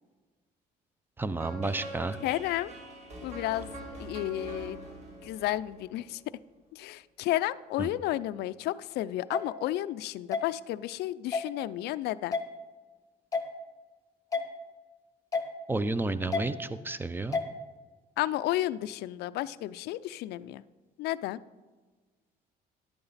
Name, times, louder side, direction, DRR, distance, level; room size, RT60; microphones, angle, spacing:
voice 1, 1.2-2.2 7.8-7.9 15.7-17.4, right 2 dB, 10° right, 14 dB, 0.5 m, -31 dB
sound 1, 1.4-6.4, right 1 dB, 40° right, 2.4 m, -44 dB
voice 2, 2.2-2.7 3.2-4.8 5.2-6.2 6.7-12.4 18.2-20.6 21.0-21.4, left 15 dB, 75° left, 16 dB, 0.4 m, -32 dB
sound 2, 9.3-9.4 10.3-10.4 11.3-11.5 12.3-12.4 13.3-13.5 14.3-14.4 15.3-15.5 16.3-16.4 17.3-17.5, left 5 dB, 20° left, 0.9 m, -29 dB
10.5 x 8.7 x 4.1 m, 1.3 s
cardioid pair, 110°, 17 cm